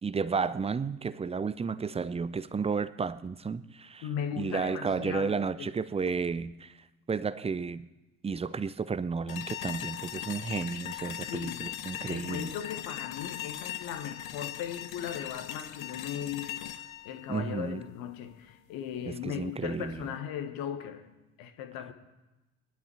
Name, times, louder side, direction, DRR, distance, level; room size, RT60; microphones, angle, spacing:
voice 1, 0.0-4.1 4.4-6.7 7.1-7.9 8.2-12.5 17.3-17.8 19.1-20.0, right 5 dB, 15° right, 0.6 m, -32 dB
voice 2, 4.0-5.7 11.3-11.7 12.1-21.1 21.4-21.9, left 9 dB, 55° left, 1.5 m, -38 dB
sound 1, 9.3-18.3, left 12 dB, 75° left, 0.7 m, -40 dB
22.0 x 11.5 x 4.7 m
figure-of-eight pair, 50°, 42 cm